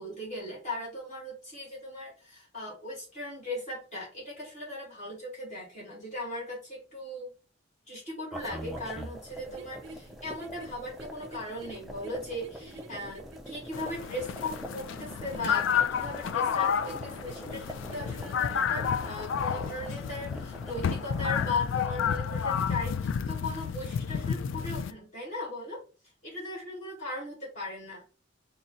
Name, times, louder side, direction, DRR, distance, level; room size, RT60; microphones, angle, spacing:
voice 1, 0.0-7.3 7.9-25.8 26.2-28.0, left 2 dB, 40° left, -6 dB, 1.9 m, -38 dB
sound 1, 8.3-21.5, equal, ahead, 0.4 m, -44 dB
sound 2, 9.5-18.2, right 2 dB, 65° right, 0.5 m, -50 dB
sound 3, 13.7-24.9, left 7 dB, 70° left, 0.3 m, -31 dB
3.8 x 2.1 x 4.0 m, 0.35 s
head